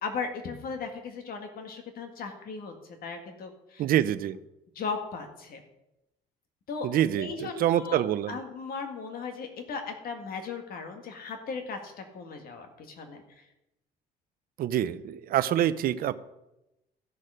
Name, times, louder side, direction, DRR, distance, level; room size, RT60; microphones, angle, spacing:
voice 1, 0.0-2.7 3.0-3.8 4.8-5.6 6.7-6.9 7.2-13.2, left 5 dB, 60° left, 5 dB, 1.9 m, -37 dB
voice 2, 3.8-4.4 6.8-7.3 7.6-8.3 14.6-16.1, right 11 dB, 60° right, 14 dB, 0.6 m, -25 dB
14.0 x 6.6 x 5.0 m, 0.92 s
cardioid pair, 110°, 17 cm